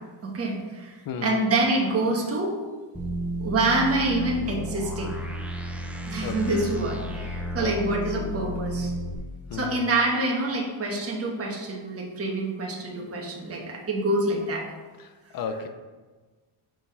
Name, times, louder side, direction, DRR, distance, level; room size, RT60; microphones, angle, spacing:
voice 1, 0.2-0.9 1.2-2.5 3.4-5.2 6.1-8.9 9.5-14.6, right 2 dB, 30° right, -1 dB, 1.3 m, -26 dB
voice 2, 1.1-1.4 6.2-6.6 7.6-8.0 9.5-9.9 15.0-15.7, left 6 dB, 45° left, 7 dB, 0.7 m, -35 dB
sound 1, 2.9-9.1, equal, 5° right, 0.7 m, -32 dB
5.9 x 4.5 x 5.4 m, 1.3 s
cardioid pair, 150°, 49 cm